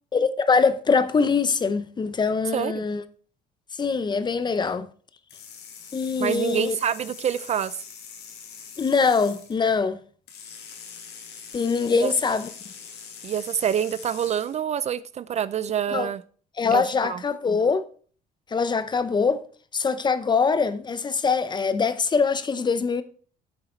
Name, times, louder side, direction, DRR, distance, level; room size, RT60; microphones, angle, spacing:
voice 1, 0.1-3.0 3.8-4.9 5.9-6.8 8.8-10.0 11.5-12.5 15.9-16.1 16.6-17.8 18.5-19.4 19.7-23.0, left 5 dB, 25° left, 0.7 m, -23 dB
voice 2, 2.5-2.8 6.2-7.8 12.0-12.1 13.2-16.2 16.7-17.2, right 9 dB, 40° right, 0.4 m, -26 dB
sound 1, 5.3-9.6 10.3-14.6, left 6 dB, 85° left, 2.3 m, -43 dB
8.1 x 6.8 x 4.4 m
cardioid pair, 110°, 17 cm